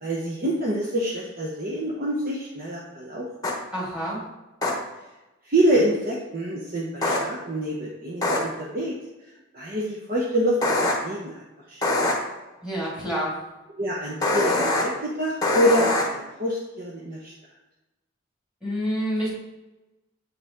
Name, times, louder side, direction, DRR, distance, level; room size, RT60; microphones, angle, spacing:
voice 1, 0.0-3.3 5.4-9.0 9.5-10.8 11.0-11.3 11.7-12.1 13.8-17.3, right 1 dB, 40° right, -3 dB, 0.9 m, -26 dB
sound 1, 3.4-3.5 4.6-4.7 7.0-7.2 8.2-8.4 10.6-10.9 11.8-12.1 14.2-14.8 15.4-16.0, left 2 dB, 15° left, 1.0 m, -22 dB
voice 2, 3.7-4.3 12.6-13.4 18.6-19.3, equal, 5° right, -6 dB, 2.2 m, -28 dB
7.9 x 4.8 x 3.7 m, 1.1 s
head